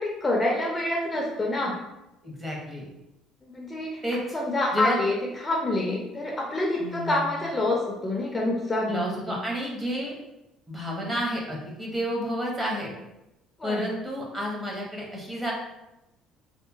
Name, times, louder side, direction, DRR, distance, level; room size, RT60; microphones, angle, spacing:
voice 1, 0.0-1.7 3.4-4.0 4.3-9.0 9.3-9.4 13.6-13.8, left 2 dB, 20° left, -2 dB, 0.4 m, -27 dB
voice 2, 2.2-2.9 4.0-4.2 4.7-5.0 6.8-7.3 8.9-10.1 10.7-12.9 13.6-15.5, equal, 15° right, -3 dB, 0.7 m, -30 dB
2.8 x 2.1 x 2.6 m, 0.93 s
cardioid pair, 110°, 0 cm